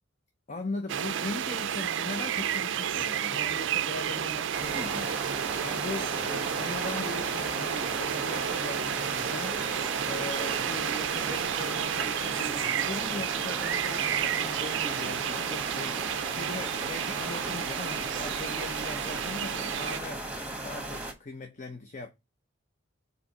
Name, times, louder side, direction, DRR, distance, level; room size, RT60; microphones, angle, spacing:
voice 1, 0.5-5.3 5.6-9.6 10.0-20.3 20.6-22.1, left 2 dB, 40° left, 0.8 m, -39 dB
sound 1, 0.9-20.0, right 9 dB, 65° right, 0.4 m, -31 dB
sound 2, 4.5-21.1, right 1 dB, 5° right, 1.4 m, -37 dB
5.0 x 4.1 x 5.5 m
head